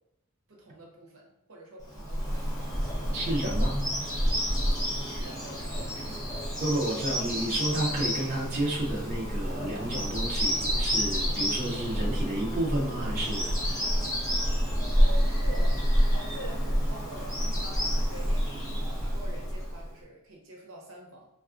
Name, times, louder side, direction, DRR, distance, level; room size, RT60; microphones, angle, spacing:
voice 1, 0.5-2.5 5.0-6.4 14.8-15.8 16.1-21.3, right 1 dB, 75° right, -1 dB, 0.7 m, -45 dB
Bird vocalization bird call bird song, 1.9-19.9, equal, 15° left, 0.8 m, -28 dB
voice 2, 3.1-3.7 6.6-13.5, right 1 dB, 35° right, -5 dB, 0.5 m, -31 dB
3.4 x 2.3 x 2.4 m, 0.81 s
head